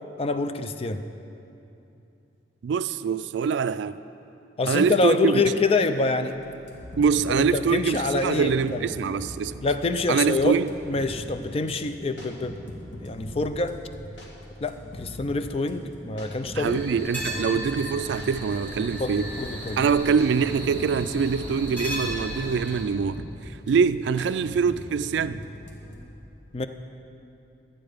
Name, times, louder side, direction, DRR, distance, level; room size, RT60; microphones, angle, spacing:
voice 1, 0.2-1.0 4.6-6.4 7.4-9.2 9.6-10.5 10.9-12.6 13.0-13.8 14.6-16.8 17.5-17.6 19.0-19.8 26.5-26.7, left 3 dB, 30° left, 0.4 m, -26 dB
voice 2, 2.6-4.0 4.7-5.4 7.0-9.6 10.1-10.7 16.6-19.3 19.8-25.4, right 6 dB, 70° right, 0.3 m, -24 dB
sound 1, 6.3-26.1, left 1 dB, 75° left, 1.7 m, -42 dB
sound 2, 16.6-22.8, equal, 10° left, 1.4 m, -35 dB
12.5 x 8.6 x 5.1 m
head